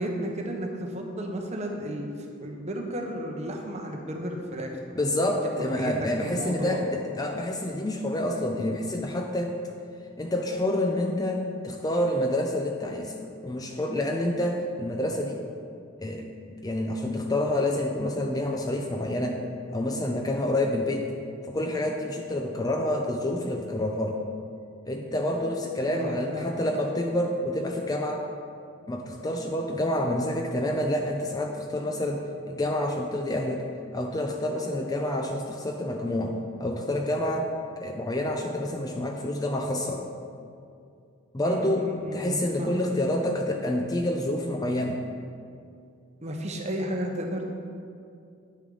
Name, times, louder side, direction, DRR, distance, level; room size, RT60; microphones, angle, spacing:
voice 1, 0.0-2.1 2.4-4.9 5.2-6.8 25.8-26.6 41.4-42.8 46.2-47.5, right 1 dB, 30° right, 2 dB, 0.8 m, -33 dB
voice 2, 4.9-9.5 10.2-15.4 16.0-19.4 19.7-21.1 21.5-24.2 24.8-28.2 28.9-33.6 33.9-36.3 36.6-40.0 41.3-41.9 42.1-45.0, left 1 dB, 15° left, 2 dB, 0.4 m, -28 dB
9.4 x 6.2 x 3.8 m, 2.4 s
head